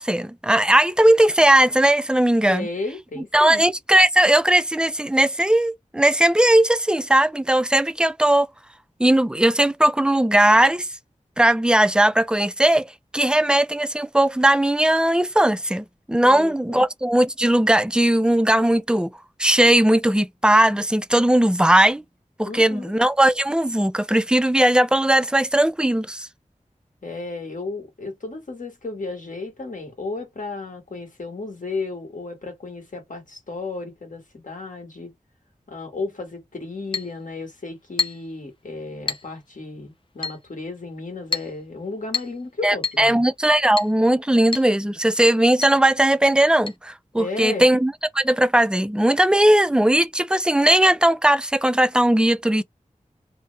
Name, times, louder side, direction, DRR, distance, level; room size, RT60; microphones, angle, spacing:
voice 1, 0.0-2.7 3.3-8.5 9.0-10.9 11.4-19.1 19.4-22.0 22.4-26.3 42.6-52.6, right 1 dB, 5° right, 0.4 m, -18 dB
voice 2, 2.5-3.6 16.2-16.8 22.4-22.9 27.0-35.1 35.7-43.2 47.2-47.6, left 3 dB, 70° left, 1.5 m, -33 dB
Chink clink, 36.9-37.1 38.0-38.3 39.1-39.3 40.2-40.4 41.3-41.5 42.1-42.4 42.8-43.0 43.8-44.0 44.5-44.7 45.0-45.1 45.6-45.8 46.7-46.8, left 4 dB, 40° left, 0.6 m, -28 dB
3.3 x 2.1 x 3.2 m
wide cardioid pair, 45°, 14 cm